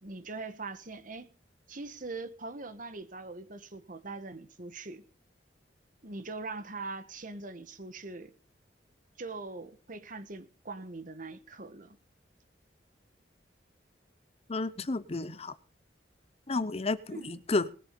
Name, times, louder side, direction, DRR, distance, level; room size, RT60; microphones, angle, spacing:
voice 1, 0.0-1.3 1.7-5.0 6.0-8.3 9.2-12.0 17.1-17.4, right 3 dB, 50° right, 1.5 m, -42 dB
voice 2, 14.5-15.5 16.5-17.7, left 3 dB, 35° left, 0.8 m, -31 dB
20.5 x 7.5 x 5.3 m
head